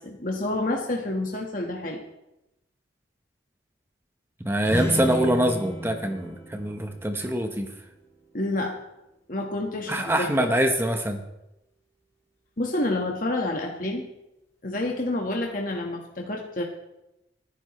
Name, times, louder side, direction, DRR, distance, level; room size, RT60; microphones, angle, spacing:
voice 1, 0.0-2.0 8.3-8.8 9.3-10.5 12.6-14.1 14.6-16.6, left 2 dB, 45° left, 0 dB, 1.5 m, -28 dB
voice 2, 4.4-7.7 9.9-11.2, right 1 dB, 15° right, 5 dB, 1.0 m, -24 dB
sound 1, 4.6-8.3, equal, 15° left, 2.2 m, -33 dB
29.0 x 10.0 x 3.2 m, 0.91 s
head